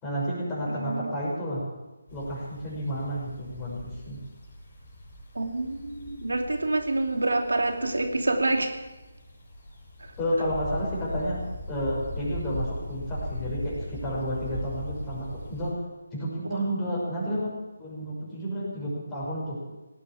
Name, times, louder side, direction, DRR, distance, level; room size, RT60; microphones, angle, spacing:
voice 1, 0.0-1.6 2.1-4.2 10.2-11.4 11.7-15.7 16.1-17.5 17.8-19.6, equal, 15° left, -6 dB, 6.1 m, -31 dB
voice 2, 0.7-1.1 5.3-8.8 10.0-10.1 16.4-16.7, right 2 dB, 75° right, 4 dB, 2.7 m, -27 dB
sound 1, 2.1-15.7, left 1 dB, 40° left, 6.2 m, -39 dB
18.0 x 8.6 x 8.6 m, 1.1 s
figure-of-eight pair, 155°, 0 cm